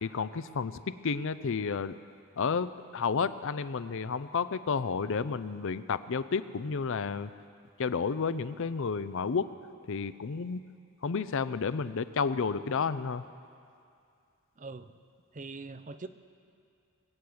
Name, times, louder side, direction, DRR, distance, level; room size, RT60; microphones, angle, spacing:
voice 1, 0.0-2.0 2.4-7.3 7.8-9.5 9.9-10.6 11.0-13.2, left 5 dB, 60° left, 14 dB, 0.5 m, -31 dB
voice 2, 14.6-14.9 15.3-16.1, right 3 dB, 35° right, 11 dB, 0.6 m, -42 dB
21.0 x 7.9 x 8.6 m, 2.4 s
head